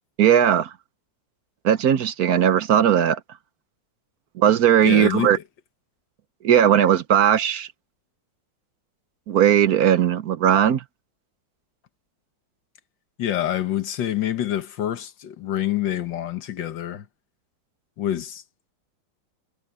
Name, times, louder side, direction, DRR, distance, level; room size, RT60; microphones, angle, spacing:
voice 1, 0.2-0.7 1.6-3.2 4.4-5.4 6.4-7.7 9.3-10.8, right 9 dB, 65° right, 1.2 m, -18 dB
voice 2, 4.8-5.4 13.2-17.1 18.0-18.4, left 11 dB, 85° left, 1.9 m, -26 dB
omnidirectional pair, 1.9 m